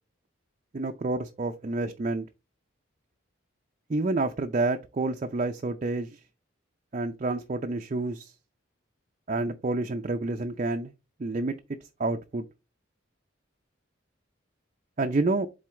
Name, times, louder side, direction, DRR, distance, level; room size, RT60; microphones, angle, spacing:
voice 1, 0.7-2.3 3.9-6.2 6.9-8.3 9.3-10.9 11.2-12.4 15.0-15.5, right 2 dB, 35° right, 0.5 m, -29 dB
7.6 x 3.9 x 3.7 m
head